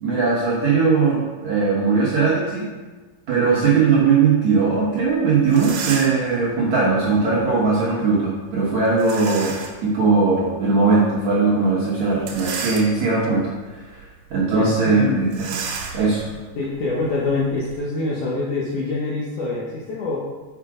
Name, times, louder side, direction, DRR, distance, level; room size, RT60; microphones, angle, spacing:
voice 1, 0.0-2.6 3.3-14.0 14.3-15.6 15.9-16.3, right 4 dB, 65° right, -7 dB, 1.9 m, -19 dB
sound 1, 5.1-5.2 5.4-6.3 9.0-9.8 10.4-10.5 12.1-13.3 13.8-14.0 14.3-14.4 15.3-17.8, right 5 dB, 80° right, 3.1 m, -32 dB
voice 2, 14.5-15.3 16.2-16.3 16.6-20.2, left 3 dB, 70° left, -5 dB, 1.9 m, -25 dB
6.5 x 6.0 x 4.9 m, 1.4 s
omnidirectional pair, 4.9 m